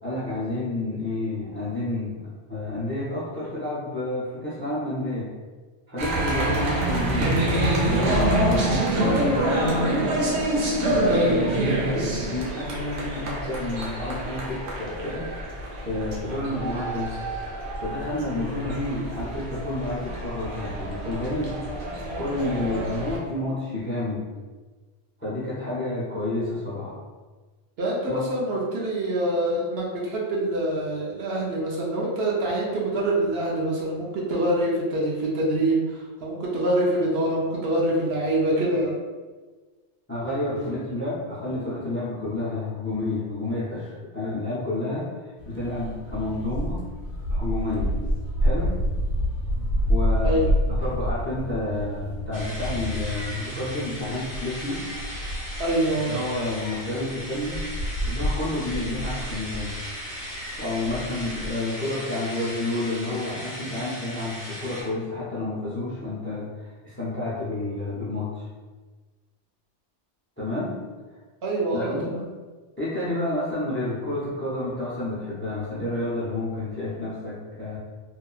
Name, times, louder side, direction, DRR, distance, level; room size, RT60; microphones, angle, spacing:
voice 1, 0.0-2.2 2.5-5.3 5.9-7.4 7.8-10.3 10.8-15.3 15.7-17.2 17.8-21.5 22.1-24.3 25.2-27.0 28.1-28.2 40.1-46.9 47.3-48.0 48.4-48.7 49.9-50.4 50.7-54.9 55.9-57.7 58.1-59.7 60.6-68.5 70.4-70.8 71.7-72.2 72.8-77.8, left 2 dB, 15° left, -7 dB, 0.4 m, -30 dB
sound 1, 6.0-23.2, right 1 dB, 90° right, 1.0 m, -26 dB
voice 2, 11.1-11.5 27.8-38.9 50.2-50.5 55.6-56.1 71.4-72.2, right 1 dB, 65° right, -3 dB, 0.8 m, -25 dB
sound 2, 45.4-61.5, equal, 75° left, 0.9 m, -29 dB
sound 3, 52.3-64.8, equal, 45° right, 1.3 m, -37 dB
2.8 x 2.4 x 2.3 m, 1.3 s
omnidirectional pair, 1.2 m